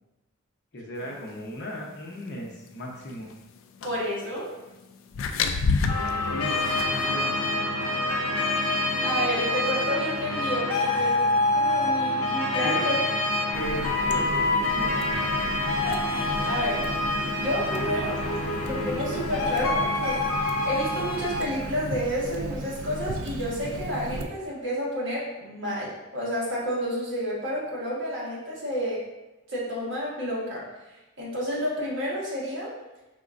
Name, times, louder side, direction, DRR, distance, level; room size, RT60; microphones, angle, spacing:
voice 1, 0.7-3.3 6.3-7.4 12.6-12.9 13.2-15.2, equal, 50° left, -1 dB, 0.7 m, -36 dB
sound 1, 3.8-4.0 5.1-7.1, left 4 dB, 65° left, 0.3 m, -27 dB
voice 2, 3.8-4.5 9.0-11.2 11.5-13.0 15.8-16.8 17.4-18.2 18.6-20.2 20.6-29.0 29.5-30.7 31.2-32.7, equal, 55° right, -6 dB, 1.4 m, -30 dB
sound 2, 5.9-21.5, left 2 dB, 80° left, 0.7 m, -26 dB
Water tap faucet, 13.5-24.2, right 2 dB, 70° right, 0.4 m, -36 dB
5.0 x 3.6 x 2.5 m, 1.0 s
head